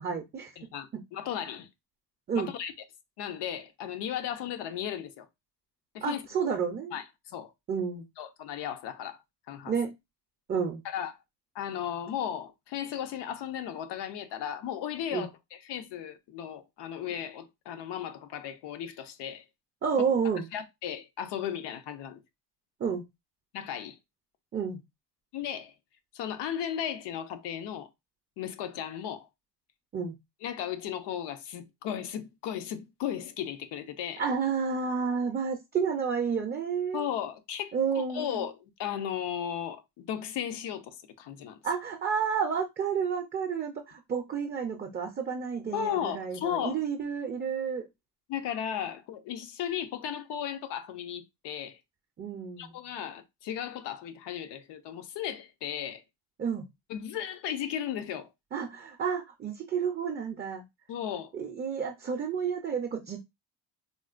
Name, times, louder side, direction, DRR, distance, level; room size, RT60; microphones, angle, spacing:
voice 1, 0.0-0.5 2.3-2.5 6.0-6.9 7.7-8.0 9.7-9.9 10.5-10.8 15.1-15.3 19.8-20.5 22.8-23.0 24.5-24.8 29.9-30.1 34.2-37.1 37.7-38.4 41.6-47.8 52.2-52.7 56.4-56.7 58.5-60.6 61.3-63.2, right 6 dB, 25° right, 0.4 m, -30 dB
voice 2, 0.6-1.7 2.3-2.7 3.2-5.3 5.9-6.2 6.9-7.5 8.2-9.2 9.5-9.7 10.8-11.1 11.5-19.4 20.5-22.2 23.5-24.0 25.3-25.7 26.1-27.9 28.4-29.3 30.4-34.2 36.9-41.6 45.7-46.8 48.3-51.8 52.6-56.0 56.9-58.3 60.9-61.3, left 9 dB, 85° left, 0.7 m, -35 dB
3.7 x 2.1 x 2.4 m
cardioid pair, 145°, 40 cm